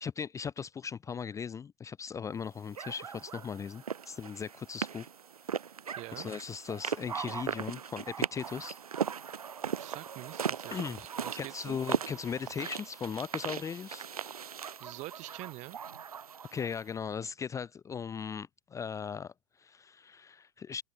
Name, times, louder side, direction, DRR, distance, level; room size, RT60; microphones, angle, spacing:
voice 1, 0.0-5.1 6.1-8.8 10.7-11.1 11.3-14.1 16.5-20.8, left 6 dB, 15° left, 0.7 m, -38 dB
sound 1, 2.7-16.8, right 7 dB, 85° right, 0.5 m, -38 dB
voice 2, 5.9-6.3 9.7-11.8 14.8-15.8, right 20 dB, 40° right, 3.3 m, -46 dB
figure-of-eight pair, 95°, 19 cm